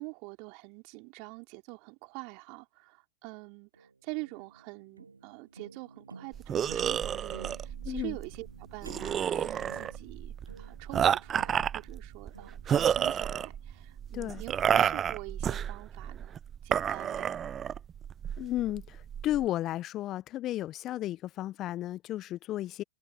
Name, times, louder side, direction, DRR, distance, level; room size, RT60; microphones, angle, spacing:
voice 1, 0.0-16.4 16.6-17.3, right 33 dB, 45° right, 4.2 m, -45 dB
sound 1, 3.7-14.9, right 4 dB, 85° right, 3.2 m, -53 dB
sound 2, 6.3-19.5, right 8 dB, 25° right, 0.5 m, -31 dB
voice 2, 7.8-8.2 14.1-14.4 18.4-22.8, left 14 dB, 35° left, 0.9 m, -33 dB
figure-of-eight pair, 100°, 0 cm